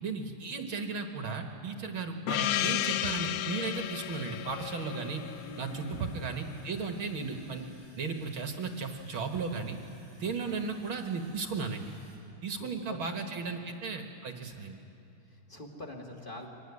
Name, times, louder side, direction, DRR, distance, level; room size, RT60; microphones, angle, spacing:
voice 1, 0.0-5.2 5.6-7.6 8.0-9.8 10.1-11.9 12.4-14.8, right 4 dB, 55° right, 4 dB, 1.6 m, -35 dB
Gong, 2.3-6.6, left 12 dB, 75° left, 2.0 m, -33 dB
sound 1, 2.9-12.2, equal, 35° left, 5.3 m, -59 dB
voice 2, 5.4-6.2 10.2-10.7 12.5-13.1 13.4-13.8 15.2-16.5, left 1 dB, 15° left, 0 dB, 2.1 m, -46 dB
24.5 x 18.5 x 9.7 m, 2.9 s
omnidirectional pair, 3.8 m